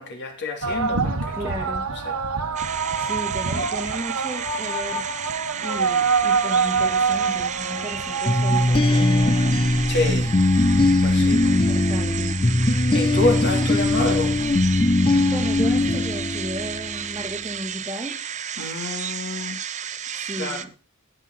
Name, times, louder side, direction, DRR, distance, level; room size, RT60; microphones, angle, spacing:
voice 1, 0.0-1.3 1.9-2.1 9.9-10.3 11.0-11.4 12.9-14.3 18.6-19.6 20.4-20.6, left 2 dB, 50° left, 3.3 m, -27 dB
sound 1, 0.6-12.5, right 5 dB, 85° right, 1.3 m, -26 dB
voice 2, 1.3-1.9 3.0-5.1 5.6-9.4 11.2-12.3 15.1-18.2 20.1-20.7, equal, 10° right, 1.6 m, -34 dB
sound 2, 2.6-20.7, right 8 dB, 35° right, 0.6 m, -33 dB
sound 3, 8.3-17.0, left 2 dB, 25° left, 0.6 m, -20 dB
16.0 x 9.6 x 4.1 m
head